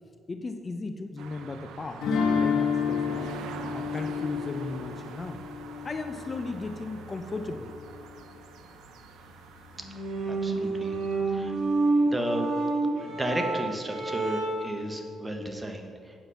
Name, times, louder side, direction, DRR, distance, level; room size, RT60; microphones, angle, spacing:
voice 1, 0.3-5.4 5.8-7.8, left 3 dB, 30° left, 7 dB, 0.7 m, -36 dB
sound 1, 1.2-11.9, right 5 dB, 85° right, 0.8 m, -45 dB
sound 2, 2.0-6.9, left 6 dB, 80° left, 1.9 m, -30 dB
sound 3, 9.8-14.8, right 3 dB, 70° right, 2.2 m, -28 dB
voice 2, 10.3-10.9 11.3-11.5 12.1-12.5 13.0-15.9, right 1 dB, 15° right, 4 dB, 1.3 m, -33 dB
9.1 x 7.7 x 5.6 m, 2.4 s
cardioid pair, 90°, 0 cm